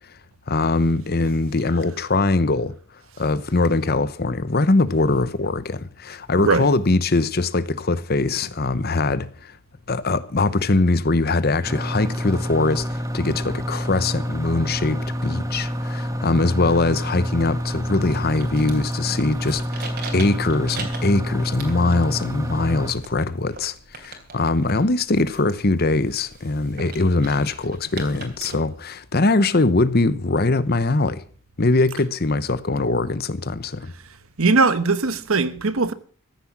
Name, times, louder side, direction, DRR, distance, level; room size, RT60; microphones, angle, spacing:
voice 1, 0.5-2.8 3.2-9.6 9.9-31.2 31.6-33.9, left 3 dB, 45° left, 0.9 m, -22 dB
sound 1, 11.6-22.9, equal, 15° right, 1.4 m, -28 dB
sound 2, 16.8-28.5, right 4 dB, 45° right, 3.3 m, -41 dB
voice 2, 34.4-35.9, right 3 dB, 70° right, 1.2 m, -19 dB
14.5 x 9.9 x 7.3 m
head